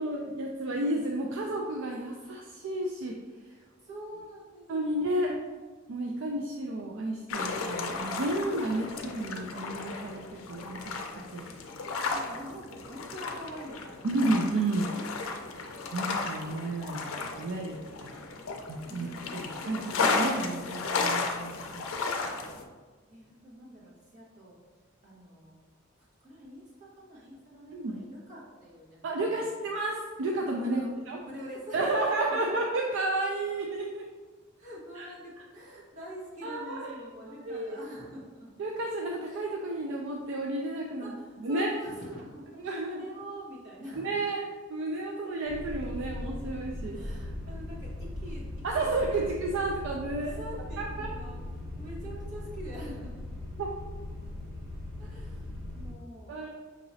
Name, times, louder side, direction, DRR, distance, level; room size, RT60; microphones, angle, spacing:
voice 1, 0.0-3.2 4.7-5.4 5.9-11.0 11.3-11.5 14.0-14.9 15.9-18.1 18.7-19.1 19.3-21.8 27.7-28.0 29.0-31.2 31.7-34.0 35.0-35.1 36.4-36.9 37.2-37.8 38.6-41.1 41.4-41.7 42.6-43.1 44.0-44.4 44.7-47.0 48.6-50.4 50.8-51.1 53.6-53.7 56.3-56.5, right 2 dB, 65° right, 0 dB, 0.4 m, -32 dB
voice 2, 3.8-5.4 11.9-14.2 18.9-20.0 23.1-24.6 25.0-25.6 26.2-29.6 30.6-31.0 31.2-32.5 34.6-38.5 41.0-44.2 46.9-49.4 50.2-51.4 51.8-53.2 55.0-56.3, equal, 40° right, -7 dB, 1.4 m, -45 dB
sound 1, 7.3-22.6, left 3 dB, 80° left, 0.5 m, -34 dB
sound 2, 45.5-55.9, left 1 dB, 85° right, 1.4 m, -39 dB
5.9 x 2.9 x 2.7 m, 1.4 s
head